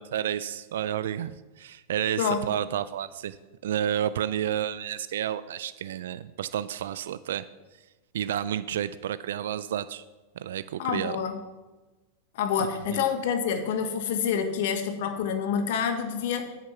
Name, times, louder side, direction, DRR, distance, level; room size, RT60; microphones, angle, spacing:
voice 1, 0.0-3.4 3.6-7.4 8.1-10.0 10.4-11.2 12.9-13.0, right 10 dB, 80° right, 15 dB, 0.4 m, -30 dB
voice 2, 10.8-11.4 12.3-16.5, left 7 dB, 70° left, 7 dB, 1.3 m, -27 dB
9.0 x 6.6 x 5.9 m, 1.2 s
hypercardioid pair, 120°, 0 cm